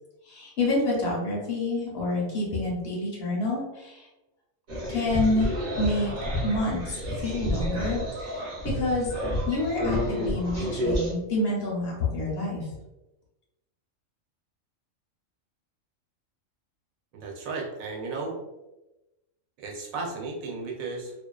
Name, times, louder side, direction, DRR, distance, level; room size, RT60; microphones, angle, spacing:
voice 1, 0.2-4.1 4.9-6.1 6.4-9.1 9.5-12.7, left 2 dB, 60° left, -4 dB, 0.8 m, -28 dB
sound 1, 4.7-11.1, equal, 40° right, 0.6 m, -30 dB
voice 2, 17.1-18.4 19.6-21.1, right 3 dB, 85° right, 1 dB, 1.0 m, -34 dB
2.4 x 2.2 x 2.2 m, 1.0 s
omnidirectional pair, 1.4 m